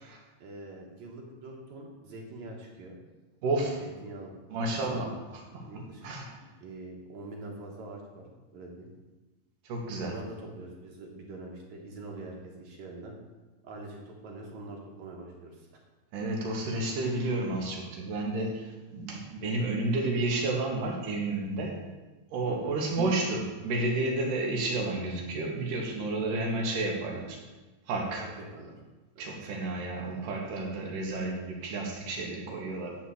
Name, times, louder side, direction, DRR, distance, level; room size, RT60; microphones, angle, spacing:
voice 1, 0.4-3.0 3.8-4.3 4.6-5.0 5.6-6.0 6.4-8.3 8.5-8.9 10.0-13.1 13.6-15.5 22.4-22.8 28.2-28.8 29.2-29.3, right 2 dB, 65° right, -1 dB, 2.6 m, -44 dB
voice 2, 3.4-3.8 4.5-5.6 6.0-6.2 9.7-10.1 16.1-21.8 22.3-27.4 27.9-28.3 29.2-33.0, right 2 dB, 85° right, 0 dB, 3.2 m, -31 dB
10.5 x 4.4 x 7.8 m, 1.2 s
omnidirectional pair, 3.6 m